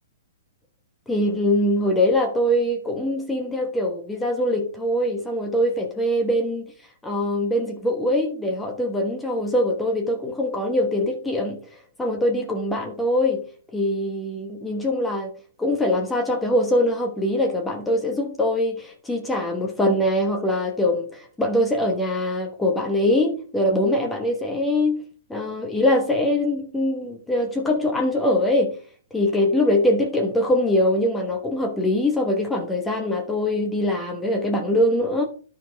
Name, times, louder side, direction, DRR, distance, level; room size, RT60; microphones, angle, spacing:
voice 1, 1.1-6.7 7.0-11.6 12.0-15.3 15.6-25.0 25.3-28.8 29.1-35.2, left 1 dB, 10° left, 1.1 m, -23 dB
11.0 x 4.8 x 3.5 m
hypercardioid pair, 135°, 0 cm